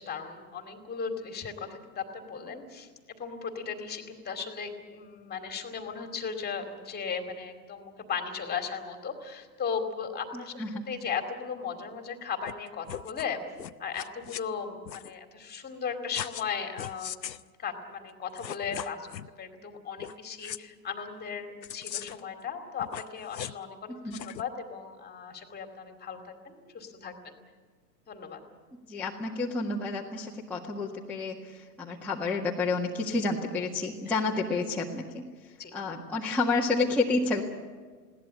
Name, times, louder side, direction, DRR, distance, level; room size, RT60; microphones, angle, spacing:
voice 1, 0.0-2.9 3.2-10.6 10.9-13.4 13.8-17.2 17.6-19.1 19.4-27.4 28.1-28.4 35.6-35.7, left 6 dB, 20° left, 6 dB, 2.6 m, -36 dB
voice 2, 10.3-10.8 23.9-24.2 28.9-37.4, left 3 dB, 5° left, -6 dB, 1.8 m, -30 dB
sound 1, 12.5-12.6 12.8-13.3 13.6-14.4 14.8-15.1 16.1-16.5 16.8-17.4 18.1-18.2 18.4-19.3 20.0-20.1 20.4-20.6 21.6-22.3 22.8-23.6 24.1-24.4, left 10 dB, 90° left, 0.8 m, -39 dB
21.0 x 17.0 x 9.5 m, 1.5 s
hypercardioid pair, 115°, 50 cm